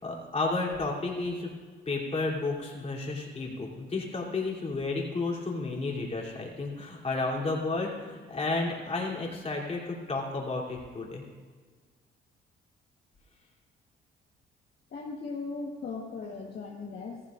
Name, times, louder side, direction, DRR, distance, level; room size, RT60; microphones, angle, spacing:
voice 1, 0.0-1.5 1.9-11.2, left 3 dB, 30° left, -3 dB, 3.1 m, -32 dB
voice 2, 14.9-17.2, left 4 dB, 55° left, -2 dB, 1.4 m, -38 dB
16.0 x 14.5 x 2.5 m, 1.5 s
cardioid pair, 90°, 20 cm